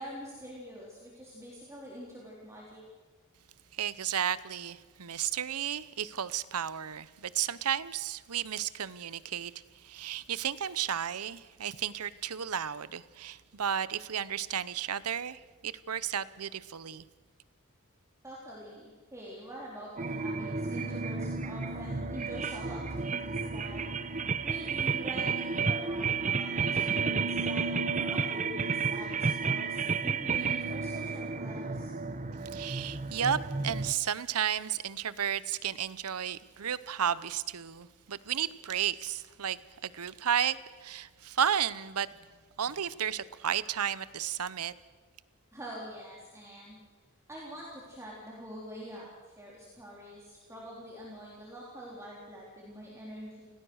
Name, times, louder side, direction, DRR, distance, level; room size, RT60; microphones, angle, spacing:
voice 1, 0.0-2.8 18.2-23.8 24.1-24.2 24.4-31.9 45.5-46.8 47.3-53.5, equal, 15° right, -5 dB, 3.9 m, -45 dB
voice 2, 3.7-17.0 32.5-40.6 40.8-42.1 42.6-44.7, right 9 dB, 80° right, 17 dB, 0.8 m, -33 dB
sound 1, 20.0-33.9, right 4 dB, 35° right, 0.9 m, -32 dB
28.5 x 18.0 x 6.4 m, 1.4 s
head